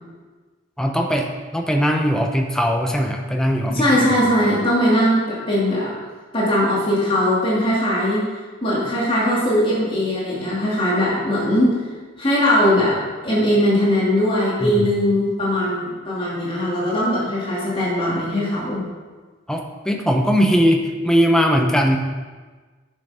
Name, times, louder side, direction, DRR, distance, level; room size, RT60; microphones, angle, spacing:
voice 1, 0.8-3.9 14.6-14.9 19.5-22.0, equal, 5° left, 2 dB, 0.8 m, -19 dB
voice 2, 3.7-5.9 6.3-8.2 8.6-11.8 12.2-13.0 13.2-18.8, equal, 25° left, -7 dB, 2.6 m, -20 dB
10.5 x 6.5 x 5.1 m, 1.4 s
head